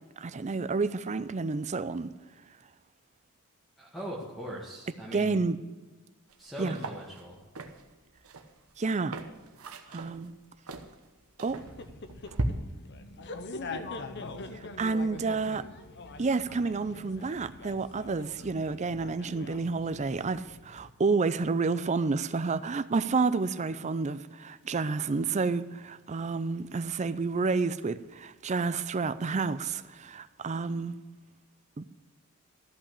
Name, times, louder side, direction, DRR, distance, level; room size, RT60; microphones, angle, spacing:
voice 1, 0.2-2.1 5.1-5.6 6.6-6.8 8.8-9.2 9.9-10.3 11.4-11.6 14.8-15.6 16.2-31.0 31.8-31.9, right 4 dB, 30° right, 0.4 m, -30 dB
voice 2, 3.8-5.4 6.4-7.4, equal, ahead, 1.8 m, -40 dB
sound 1, 6.3-6.4 6.7-12.5, right 2 dB, 70° right, 1.1 m, -39 dB
sound 2, 11.5-20.9, left 3 dB, 50° left, 0.8 m, -43 dB
13.5 x 5.8 x 8.3 m
head